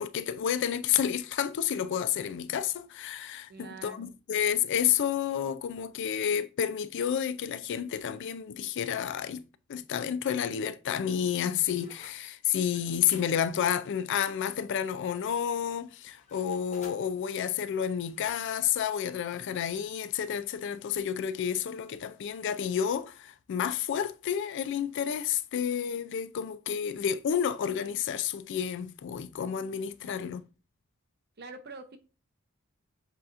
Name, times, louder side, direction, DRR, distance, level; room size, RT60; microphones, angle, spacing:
voice 1, 0.0-9.4 9.7-30.4, left 8 dB, 55° left, 0.3 m, -30 dB
voice 2, 3.5-4.1 30.0-30.4 31.4-32.0, right 4 dB, 50° right, 0.7 m, -45 dB
sound 1, 11.1-12.2 12.9-14.8 15.3-17.0 18.0-18.8 19.3-19.5, left 4 dB, 35° left, 0.9 m, -56 dB
7.7 x 2.8 x 2.5 m
head